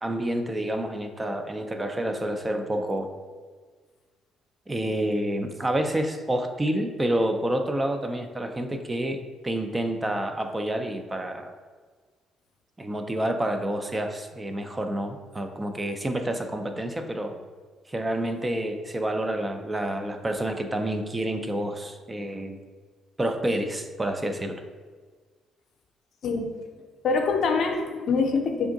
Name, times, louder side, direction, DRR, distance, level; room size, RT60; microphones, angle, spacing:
voice 1, 0.0-3.1 4.7-11.6 12.8-17.4 17.9-22.6 23.2-24.6, right 1 dB, 20° right, 6 dB, 0.4 m, -28 dB
voice 2, 27.0-28.7, left 4 dB, 60° left, 3 dB, 0.6 m, -24 dB
3.5 x 2.5 x 3.8 m, 1.5 s
supercardioid pair, 60°, 0 cm